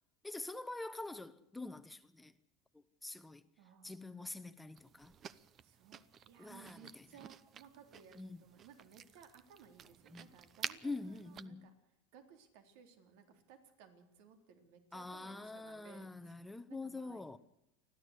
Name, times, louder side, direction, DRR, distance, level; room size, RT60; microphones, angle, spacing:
voice 1, 0.2-2.3 2.7-3.4 3.8-5.2 6.4-7.1 8.1-8.4 10.1-10.3 10.8-11.7 14.9-17.4, left 2 dB, 5° left, 1.0 m, -45 dB
voice 2, 3.6-4.5 5.6-11.7 12.1-16.4 16.7-17.4, right 7 dB, 75° right, 3.7 m, -60 dB
sound 1, 4.8-11.5, right 8 dB, 35° right, 0.9 m, -50 dB
29.5 x 12.0 x 8.2 m
supercardioid pair, 130°, 0 cm